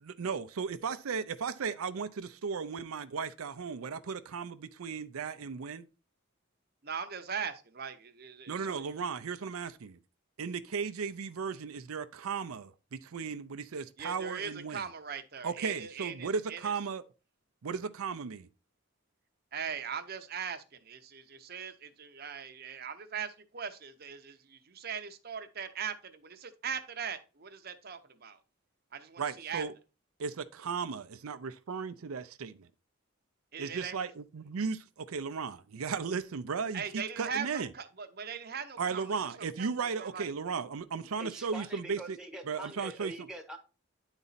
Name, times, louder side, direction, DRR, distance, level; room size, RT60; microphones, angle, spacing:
voice 1, 0.0-5.9 8.5-10.0 10.4-14.8 15.4-17.0 17.6-18.5 29.2-29.7 30.2-32.7 33.6-37.7 38.8-42.2 42.5-43.1, right 5 dB, 90° right, 0.5 m, -36 dB
voice 2, 6.8-9.0 14.0-16.7 19.5-28.4 28.9-29.6 33.5-34.1 36.7-39.1 39.6-39.7 40.0-40.3, right 7 dB, 45° right, 0.7 m, -40 dB
voice 3, 41.2-43.6, right 1 dB, 5° right, 1.0 m, -44 dB
9.7 x 4.1 x 4.0 m
head